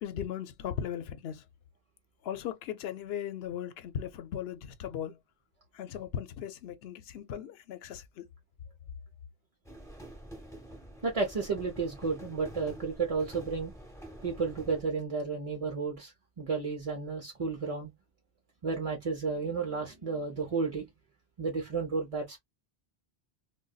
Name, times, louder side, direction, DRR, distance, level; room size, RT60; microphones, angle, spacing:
voice 1, 0.0-1.4 2.2-5.2 5.7-8.2, left 9 dB, 80° left, 0.8 m, -37 dB
sound 1, 9.7-14.8, right 1 dB, 5° left, 1.0 m, -47 dB
voice 2, 11.0-13.7 14.2-17.9 18.6-20.9 21.4-22.4, right 4 dB, 40° right, 0.7 m, -32 dB
3.9 x 2.2 x 2.2 m
omnidirectional pair, 1.0 m